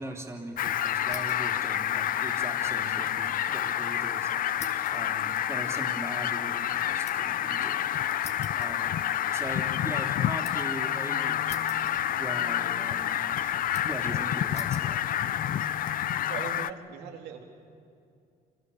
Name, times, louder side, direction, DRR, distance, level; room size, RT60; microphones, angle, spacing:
voice 1, 0.0-4.3 4.9-8.0 8.6-9.0 9.3-13.6 13.8-15.0, right 2 dB, 15° right, 2 dB, 3.2 m, -40 dB
Fowl, 0.6-16.7, left 11 dB, 55° left, 0.7 m, -29 dB
sound 1, 1.1-1.5 1.9-3.4 3.7-3.8 4.6-7.4 8.2-9.3 9.7-10.8 11.5-12.4 12.6-13.2 13.7-14.1 14.5-14.9 15.6-16.0, left 5 dB, 40° left, 2.1 m, -48 dB
voice 2, 16.3-17.4, right 7 dB, 80° right, 2 dB, 3.2 m, -39 dB
28.0 x 26.0 x 7.0 m, 2.3 s
cardioid pair, 110°, 17 cm